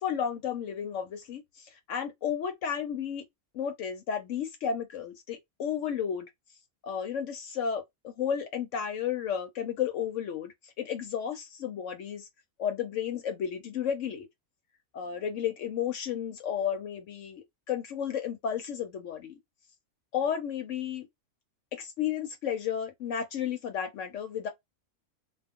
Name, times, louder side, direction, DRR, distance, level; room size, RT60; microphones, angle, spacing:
voice 1, 0.0-3.2 3.5-6.3 6.8-12.3 12.6-14.3 14.9-19.4 20.1-21.1 21.7-24.5, left 8 dB, 70° left, 0.9 m, -33 dB
2.3 x 2.3 x 3.5 m
omnidirectional pair, 1.5 m